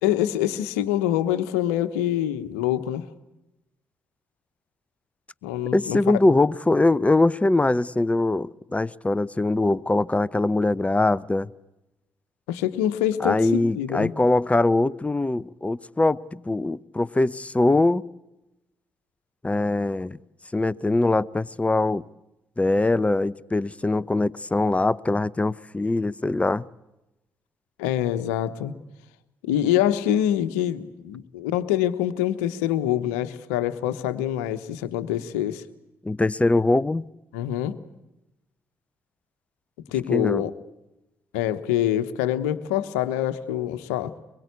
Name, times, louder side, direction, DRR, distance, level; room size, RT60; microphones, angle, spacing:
voice 1, 0.0-3.0 5.4-6.2 12.5-14.1 27.8-28.7 29.4-35.6 37.3-37.8 39.9-40.5 41.3-44.1, left 11 dB, 80° left, 1.1 m, -25 dB
voice 2, 5.7-11.5 13.2-18.0 19.4-20.2 20.5-22.0 22.6-26.7 36.0-37.0 40.1-40.4, left 2 dB, 15° left, 0.8 m, -22 dB
23.5 x 22.5 x 8.3 m
hypercardioid pair, 45°, 8 cm